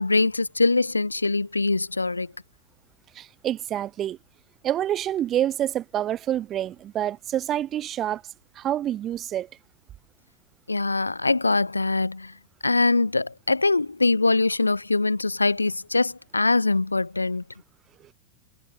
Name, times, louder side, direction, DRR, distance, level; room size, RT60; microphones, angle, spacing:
voice 1, 0.0-2.3 10.7-12.3 12.6-17.4, left 3 dB, 80° left, 5.2 m, -23 dB
voice 2, 3.1-4.2 4.6-8.2 8.5-9.5, right 11 dB, 30° right, 4.8 m, -27 dB
figure-of-eight pair, 90°, 0 cm